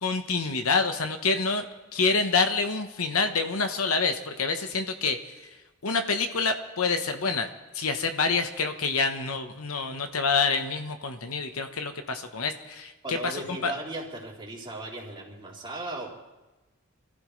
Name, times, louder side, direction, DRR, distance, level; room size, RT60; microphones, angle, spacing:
voice 1, 0.0-1.6 1.9-5.2 5.8-7.5 7.7-13.7, left 4 dB, 75° left, 7 dB, 1.1 m, -27 dB
voice 2, 13.0-16.1, right 1 dB, 25° right, -4 dB, 3.4 m, -37 dB
26.0 x 14.5 x 3.3 m, 1.1 s
head